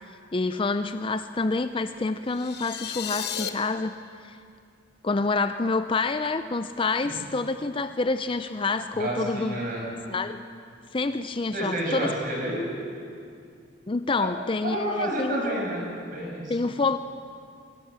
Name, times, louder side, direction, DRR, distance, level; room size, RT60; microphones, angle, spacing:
voice 1, 0.0-4.4 5.0-9.6 10.1-10.4 10.9-12.1 13.9-15.4 16.5-17.0, left 3 dB, 25° left, 10 dB, 0.5 m, -27 dB
sound 1, 2.3-3.5, left 9 dB, 55° left, 1.1 m, -33 dB
voice 2, 8.9-10.1 11.5-12.6 14.2-14.3 14.6-15.8 16.1-16.7, right 1 dB, 45° right, -2 dB, 6.4 m, -30 dB
25.0 x 17.0 x 7.5 m, 2.3 s
head